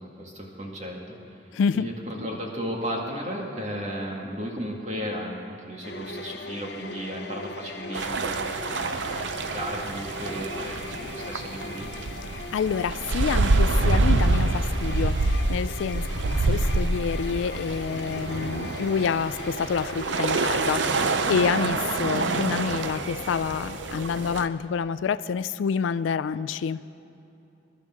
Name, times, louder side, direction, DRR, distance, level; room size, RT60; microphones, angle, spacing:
voice 1, 0.0-1.4 1.7-11.9, equal, 35° right, -1 dB, 2.1 m, -35 dB
voice 2, 1.5-1.9 12.3-16.1 16.4-26.8, left 6 dB, 85° left, 15 dB, 0.3 m, -28 dB
sound 1, 5.8-24.6, left 4 dB, 60° left, 0.7 m, -40 dB
sound 2, 7.9-24.5, right 3 dB, 75° right, 0.6 m, -27 dB
21.5 x 11.5 x 3.8 m, 3.0 s
head